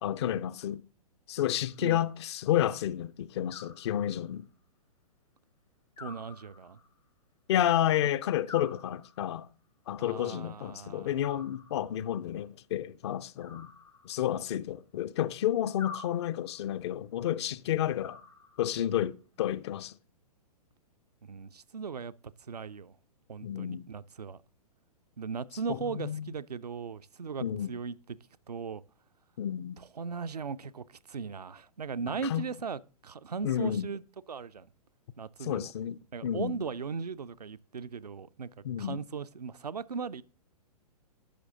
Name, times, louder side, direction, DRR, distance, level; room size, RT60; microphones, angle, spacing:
voice 1, 0.0-0.8 1.3-4.5 7.5-9.5 9.9-13.7 14.0-18.2 18.6-19.9 23.4-23.9 25.7-26.3 27.4-27.7 29.4-29.8 32.2-32.4 33.4-33.9 35.4-36.6 38.6-39.0, left 11 dB, 45° left, 0.5 m, -31 dB
Animal, 1.4-2.2 3.5-4.5 6.0-7.0 8.5-9.5 11.2-12.1 13.4-14.5 15.8-16.7 18.0-18.9, left 5 dB, 80° left, 3.1 m, -48 dB
voice 2, 6.0-6.8 10.0-11.2 21.2-22.9 23.3-24.4 25.2-28.2 28.5-28.8 29.8-34.0 34.3-34.7 35.2-35.7 36.1-38.5 38.8-40.2, right 5 dB, 85° right, 0.4 m, -38 dB
10.0 x 6.3 x 3.7 m
figure-of-eight pair, 115°, 20 cm